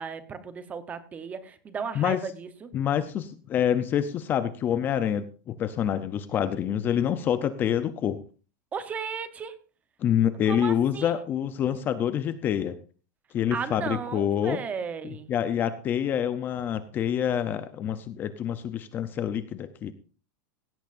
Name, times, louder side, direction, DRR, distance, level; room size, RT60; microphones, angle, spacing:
voice 1, 0.0-2.7 8.7-9.5 10.5-11.1 13.5-15.3, right 6 dB, 15° right, 12 dB, 0.8 m, -35 dB
voice 2, 2.7-8.2 10.0-12.8 13.3-14.6 15.3-19.9, left 9 dB, 20° left, 12 dB, 0.5 m, -27 dB
17.0 x 14.0 x 2.5 m, 0.36 s
supercardioid pair, 175°, 10 cm